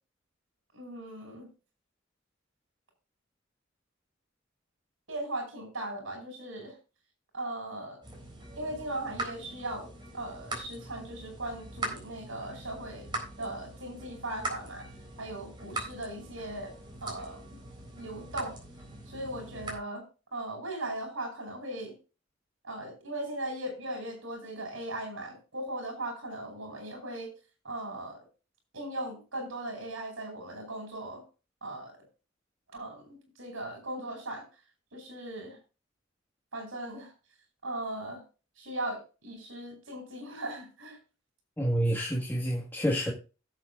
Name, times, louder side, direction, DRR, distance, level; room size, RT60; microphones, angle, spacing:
voice 1, 0.7-1.5 5.1-6.8 7.3-8.0 8.5-13.1 13.4-14.9 15.2-16.7 17.0-17.6 17.9-18.5 19.1-20.0 20.3-21.9 22.6-27.3 27.6-28.2 28.7-31.2 31.6-31.9 32.7-34.4 34.9-35.6 36.5-37.1 37.6-38.2 38.6-41.0, right 1 dB, 90° right, 5.8 m, -38 dB
sound 1, 8.0-19.8, right 2 dB, 25° right, 3.9 m, -42 dB
voice 2, 41.6-43.1, equal, 10° left, 1.5 m, -28 dB
16.5 x 7.7 x 2.4 m
head